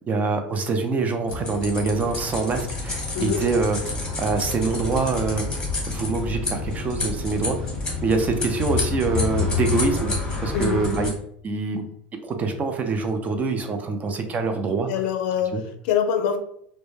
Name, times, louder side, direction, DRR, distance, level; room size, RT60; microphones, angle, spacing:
voice 1, 0.1-7.6 8.0-10.2 10.4-11.1 11.4-11.8 12.2-14.9 15.5-15.6, right 4 dB, 30° right, 6 dB, 0.4 m, -25 dB
sound 1, 1.3-11.1, left 4 dB, 15° left, 1.0 m, -28 dB
voice 2, 10.5-10.9 14.9-16.4, left 8 dB, 75° left, 7 dB, 0.4 m, -24 dB
2.1 x 2.1 x 3.1 m, 0.69 s
supercardioid pair, 110°, 5 cm